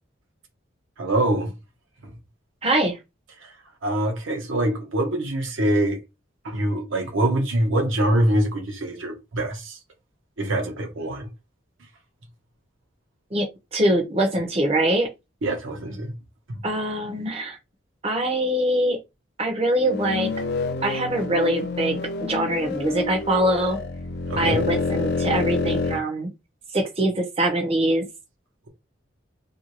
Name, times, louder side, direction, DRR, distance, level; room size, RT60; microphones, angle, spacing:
voice 1, 1.0-1.5 2.0-2.1 3.4-3.5 3.8-6.0 6.4-9.8 10.4-11.3 15.4-16.1 16.5-16.6 24.3-24.6, right 1 dB, 75° right, 0.8 m, -24 dB
voice 2, 2.6-3.0 13.3-13.5 13.7-15.1 16.6-17.6 18.0-19.0 19.4-20.3 20.8-23.8 24.4-26.3 26.7-28.0, right 1 dB, 30° right, 0.6 m, -23 dB
sound 1, 19.8-26.0, left 3 dB, 55° left, 0.4 m, -28 dB
2.6 x 2.2 x 2.9 m
head